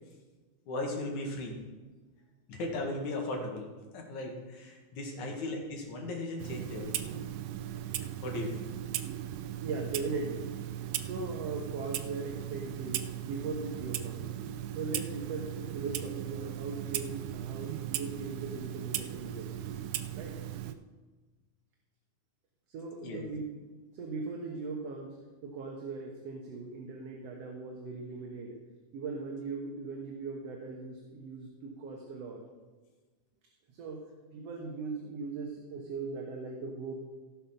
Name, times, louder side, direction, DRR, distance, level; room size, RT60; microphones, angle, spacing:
voice 1, 0.7-1.6 2.5-7.1 8.2-8.7 23.0-23.2, left 2 dB, 75° left, 1 dB, 3.2 m, -37 dB
Clock, 6.4-20.7, right 12 dB, 80° right, 1.4 m, -38 dB
voice 2, 9.6-10.5 11.0-14.3 14.8-19.7 20.1-20.4 22.7-23.7 23.9-25.1 25.4-28.6 28.9-32.4 33.7-34.1 34.3-36.9, right 4 dB, 60° right, 0 dB, 2.2 m, -39 dB
16.5 x 5.9 x 5.8 m, 1.3 s
omnidirectional pair, 3.5 m